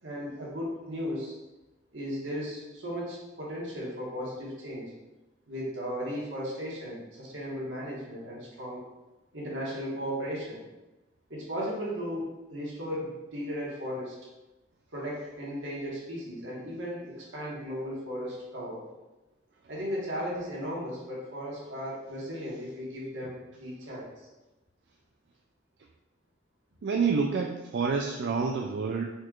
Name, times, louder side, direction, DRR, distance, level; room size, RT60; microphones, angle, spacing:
voice 1, 0.0-1.3 1.9-4.9 5.5-8.8 9.3-10.6 11.3-14.2 14.9-18.8 19.7-24.1, equal, 90° right, -5 dB, 1.5 m, -36 dB
voice 2, 26.8-29.0, right 5 dB, 65° right, 1 dB, 0.3 m, -28 dB
4.5 x 4.4 x 2.4 m, 1.0 s
head